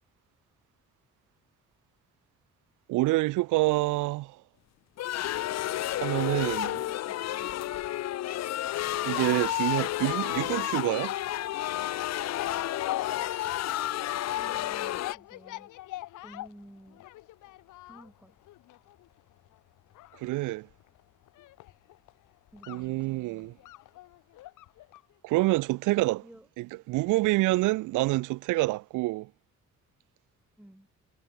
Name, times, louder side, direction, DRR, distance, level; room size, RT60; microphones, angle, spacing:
voice 1, 2.9-4.4 6.0-6.8 9.0-11.1 20.2-20.7 22.7-23.5 25.2-26.2 26.6-29.3, right 20 dB, 90° right, 0.5 m, -27 dB
sound 1, 5.0-15.1, left 13 dB, 60° left, 0.6 m, -31 dB
voice 2, 6.4-7.7 12.9-13.3 14.3-15.7 16.2-17.1 17.8-18.4 22.5-23.5 26.1-26.5 30.6-30.9, right 1 dB, 5° right, 4.1 m, -53 dB
sound 2, 9.9-25.1 25.4-25.5, left 16 dB, 90° left, 2.6 m, -43 dB
cardioid pair, 90°, 30 cm